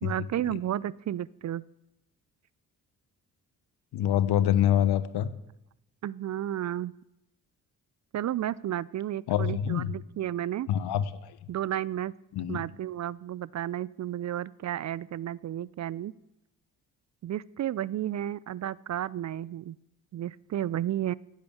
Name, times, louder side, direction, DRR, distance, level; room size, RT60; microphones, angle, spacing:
voice 1, 0.0-1.6 6.0-6.9 8.1-10.7 11.5-12.1 12.5-16.1 17.2-19.8 20.1-21.1, right 12 dB, 45° right, 21 dB, 0.5 m, -32 dB
voice 2, 3.9-5.3 9.3-9.9 10.7-11.0 12.3-12.6, left 10 dB, 65° left, 14 dB, 1.0 m, -25 dB
15.5 x 8.6 x 7.2 m, 0.89 s
hypercardioid pair, 40°, 41 cm